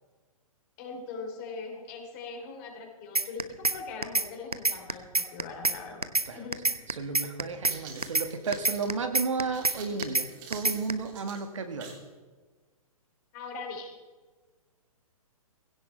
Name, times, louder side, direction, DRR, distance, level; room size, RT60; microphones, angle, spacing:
voice 1, 0.8-6.6 13.3-13.9, left 4 dB, 30° left, 2 dB, 3.5 m, -41 dB
sound 1, 3.2-3.8 4.0-4.3 4.5-5.8 6.0-6.3 6.5-7.8 8.0-8.3 8.5-9.8 10.0-10.3 10.5-10.9, right 2 dB, 85° right, 1.1 m, -26 dB
voice 2, 6.9-12.0, right 4 dB, 55° right, 7 dB, 1.8 m, -33 dB
sound 2, 7.5-12.1, right 5 dB, 35° right, 3.5 m, -47 dB
20.5 x 17.0 x 3.3 m, 1.3 s
figure-of-eight pair, 125°, 19 cm